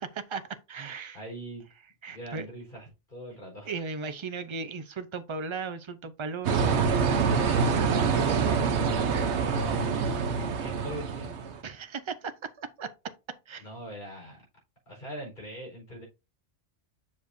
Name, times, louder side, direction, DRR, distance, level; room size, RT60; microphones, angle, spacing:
voice 1, 0.0-1.2 2.0-2.4 3.7-6.8 8.3-8.5 11.6-12.9 13.5-13.7, right 4 dB, 35° right, 0.6 m, -37 dB
voice 2, 1.1-1.7 2.1-3.7 7.3-10.2 10.6-11.4 13.6-14.4 14.9-16.1, equal, 45° left, 4.6 m, -41 dB
sound 1, 6.4-11.6, right 5 dB, 70° right, 1.1 m, -26 dB
7.4 x 6.5 x 2.6 m
omnidirectional pair, 1.2 m